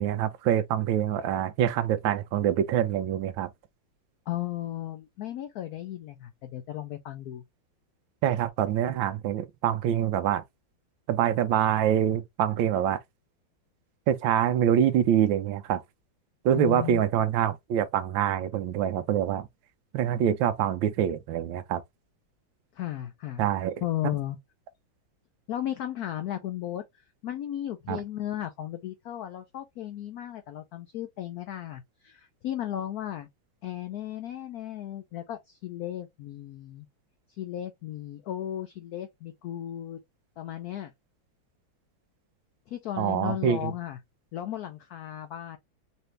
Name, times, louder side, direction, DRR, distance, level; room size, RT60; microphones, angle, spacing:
voice 1, 0.0-3.5 8.2-10.4 11.1-13.0 14.1-15.8 16.4-19.5 19.9-21.8 23.4-23.7 27.9-28.0 43.0-43.7, right 10 dB, 75° right, 1.3 m, -25 dB
voice 2, 4.3-7.4 16.5-17.0 22.8-23.4 23.8-24.4 25.5-26.8 27.2-33.3 33.6-36.9 37.3-40.0 40.4-40.9 42.7-44.0 44.3-45.6, left 12 dB, 80° left, 0.8 m, -35 dB
4.2 x 2.6 x 3.1 m
omnidirectional pair, 2.2 m